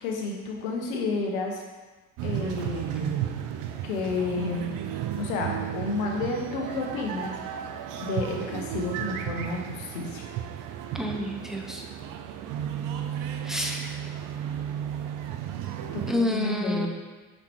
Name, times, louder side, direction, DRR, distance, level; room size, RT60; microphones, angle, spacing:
voice 1, 0.0-1.6 2.2-3.1 3.8-4.8 5.2-7.3 8.0-10.3 15.9-16.9, left 3 dB, 65° left, 0 dB, 1.4 m, -31 dB
sound 1, 2.2-16.1, right 9 dB, 45° right, 0.6 m, -34 dB
voice 2, 10.9-11.8 13.5-13.8 16.1-16.9, left 1 dB, ahead, 2 dB, 0.7 m, -28 dB
6.5 x 5.7 x 3.1 m, 1.3 s
hypercardioid pair, 75°, 43 cm